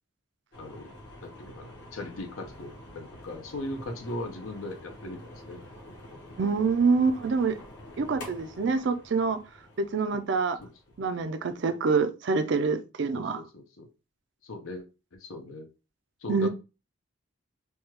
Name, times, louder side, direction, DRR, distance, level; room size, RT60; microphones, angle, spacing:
sound 1, 0.5-11.6, left 1 dB, 60° left, 1.0 m, -47 dB
voice 1, 0.6-0.9 1.2-5.2 5.5-5.6 10.6-10.7 13.1-13.9 14.4-14.8 15.1-15.7 16.2-16.5, left 2 dB, 85° left, 0.7 m, -38 dB
voice 2, 6.4-7.6 8.0-9.4 9.8-10.6 11.0-13.4 16.3-16.5, right 4 dB, 60° right, 0.4 m, -26 dB
3.3 x 2.3 x 2.9 m
head